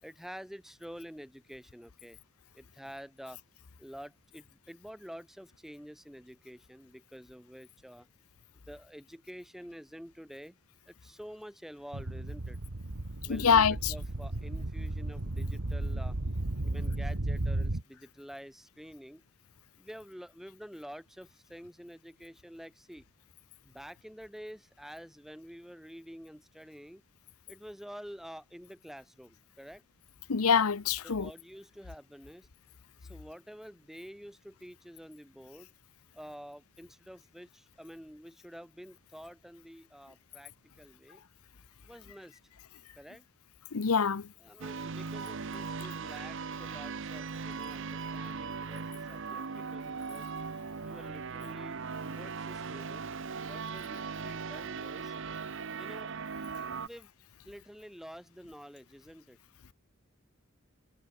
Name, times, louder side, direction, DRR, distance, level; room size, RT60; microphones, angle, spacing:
voice 1, 0.0-2.2 2.5-3.4 3.8-8.1 8.5-10.6 10.9-12.6 13.2-16.2 16.6-19.2 19.8-23.0 23.6-27.0 27.5-29.8 31.0-32.5 33.0-35.7 36.1-40.5 40.8-41.2 41.8-42.4 43.0-43.2 44.4-50.3 50.8-53.1 53.4-55.1 55.8-56.1 56.8-57.1 57.4-59.4, equal, ahead, 4.6 m, -48 dB
sound 1, 11.9-17.8, right 1 dB, 90° right, 1.6 m, -34 dB
voice 2, 13.3-13.7 30.3-31.3 43.7-44.2, left 6 dB, 90° left, 0.8 m, -25 dB
sound 2, 44.6-56.9, right 5 dB, 60° right, 0.8 m, -39 dB
head